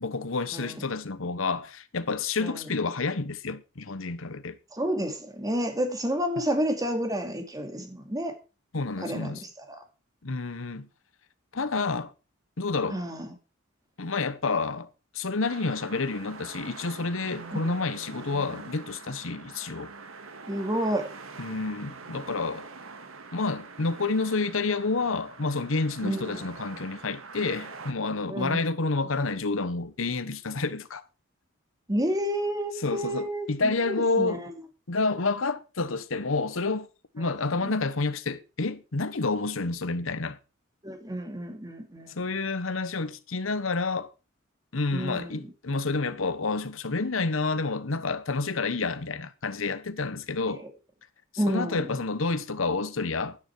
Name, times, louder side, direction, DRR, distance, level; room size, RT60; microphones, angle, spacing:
voice 1, 0.0-4.6 8.7-9.4 10.2-10.9 11.5-12.1 12.6-13.0 14.0-14.9 15.1-19.9 21.4-22.7 23.3-31.0 32.8-34.4 34.9-36.9 37.1-40.4 42.2-44.1 44.7-50.7 51.5-53.4, left 3 dB, 70° left, 1.1 m, -29 dB
voice 2, 0.5-0.8 2.4-2.7 4.7-8.3 9.0-9.8 12.9-13.3 17.5-17.7 20.5-21.1 26.0-26.5 28.3-28.6 31.9-34.6 37.2-37.7 40.8-42.1 44.9-45.5 50.6-50.7 51.4-52.0, equal, 20° right, 2.3 m, -30 dB
sound 1, 15.4-27.9, right 4 dB, 80° right, 1.8 m, -44 dB
12.0 x 9.9 x 4.6 m
head